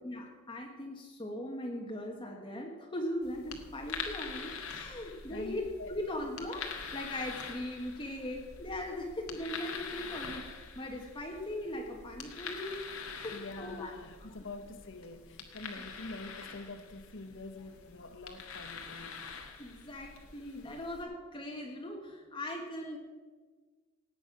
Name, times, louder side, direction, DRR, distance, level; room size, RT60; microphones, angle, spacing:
voice 1, 0.0-12.8 13.1-13.9 15.8-15.9 19.6-23.0, left 1 dB, 25° left, 0 dB, 1.4 m, -39 dB
sound 1, 3.2-21.0, left 5 dB, 80° left, 1.9 m, -45 dB
voice 2, 5.3-6.0 13.3-19.3, left 2 dB, 60° left, 9 dB, 1.2 m, -46 dB
18.0 x 9.0 x 5.9 m, 1.4 s
head